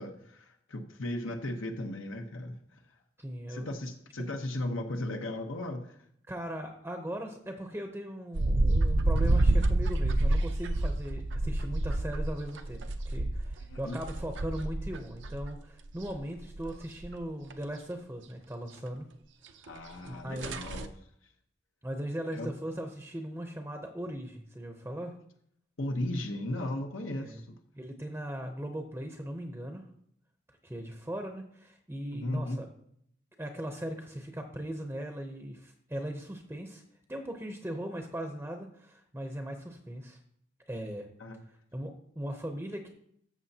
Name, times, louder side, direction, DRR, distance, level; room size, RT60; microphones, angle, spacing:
voice 1, 0.0-2.8 3.5-6.0 13.7-14.0 19.6-20.9 22.3-22.5 25.8-27.5 32.1-32.6 41.2-41.4, left 1 dB, 80° left, 4 dB, 1.0 m, -36 dB
voice 2, 3.2-3.7 6.3-19.1 20.1-20.6 21.8-25.1 27.1-27.4 27.7-29.8 30.6-32.7 33.4-36.8 37.1-40.2 40.7-41.1 41.7-42.9, right 1 dB, 10° right, 4 dB, 0.7 m, -39 dB
sound 1, 8.3-15.5 15.9-16.7 17.0-17.1 17.5-17.6 19.7-19.8 20.1-20.2 20.4-20.9, right 2 dB, 60° right, 0.6 m, -28 dB
13.5 x 6.9 x 2.8 m, 0.69 s
head